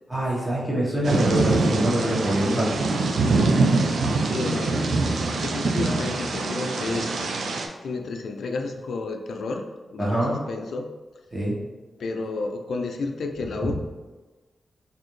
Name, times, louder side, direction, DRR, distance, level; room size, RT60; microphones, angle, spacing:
voice 1, 0.1-2.7 10.0-10.4 11.3-11.6 13.6-13.7, right 1 dB, 20° right, -7 dB, 1.3 m, -24 dB
Thunder / Rain, 1.0-7.7, right 3 dB, 75° right, 0.4 m, -24 dB
voice 2, 4.3-4.8 5.3-7.3 7.8-9.6 9.9-10.9 12.0-13.7, left 3 dB, 80° left, 4 dB, 0.3 m, -31 dB
4.1 x 2.6 x 3.1 m, 1.2 s
wide cardioid pair, 115°, 0 cm